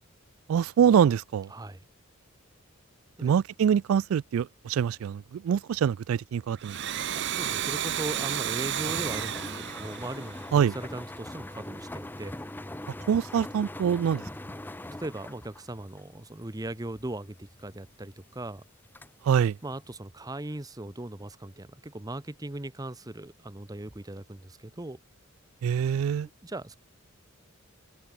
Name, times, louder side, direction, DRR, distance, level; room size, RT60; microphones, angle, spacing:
voice 1, 0.5-1.5 3.2-7.1 10.5-10.7 13.1-14.2 19.2-19.6 25.6-26.3, right 8 dB, 80° right, 0.3 m, -25 dB
voice 2, 1.5-1.8 3.2-3.3 7.3-12.4 15.0-18.6 19.6-25.0 26.2-26.8, right 1 dB, 20° right, 0.8 m, -39 dB
Domestic sounds home sounds, 6.5-11.0, right 10 dB, 60° right, 0.9 m, -32 dB
sound 1, 8.8-20.0, left 1 dB, 10° left, 0.7 m, -42 dB
open air
head